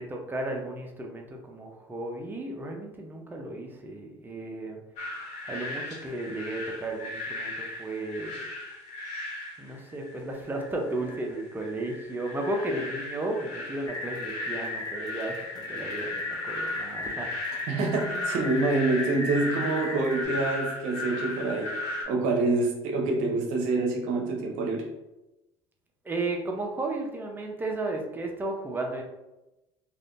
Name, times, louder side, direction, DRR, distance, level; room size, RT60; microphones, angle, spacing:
voice 1, 0.0-4.8 5.4-8.4 9.6-17.7 26.0-29.0, right 2 dB, 15° right, 1 dB, 0.6 m, -34 dB
sound 1, 5.0-22.0, left 2 dB, 65° left, 1.4 m, -37 dB
sound 2, 13.9-20.2, left 2 dB, 30° left, 0.7 m, -36 dB
voice 2, 17.7-24.9, right 3 dB, 75° right, 2 dB, 0.6 m, -27 dB
3.4 x 2.5 x 2.5 m, 0.97 s
supercardioid pair, 75°, 13 cm